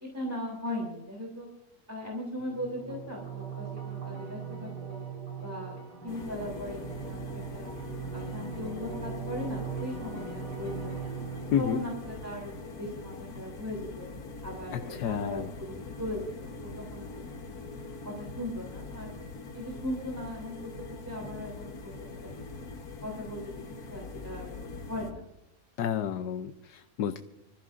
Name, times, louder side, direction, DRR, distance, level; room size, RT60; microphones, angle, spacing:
voice 1, 0.0-1.5 1.9-5.0 5.4-5.8 6.0-7.7 8.1-11.1 11.6-14.1 14.4-17.7 18.0-19.1 19.5-20.6 21.0-21.9 22.2-22.5 23.0-24.5 24.9-25.2, left 1 dB, 10° right, -2 dB, 3.3 m, -38 dB
sound 1, 2.4-13.4, right 6 dB, 90° right, 4.9 m, -40 dB
sound 2, 6.1-25.1, left 3 dB, 65° left, 1.7 m, -43 dB
voice 2, 14.7-15.5 25.8-27.2, left 9 dB, 80° left, 8 dB, 1.3 m, -30 dB
26.0 x 15.0 x 2.6 m, 0.89 s
omnidirectional pair, 1.8 m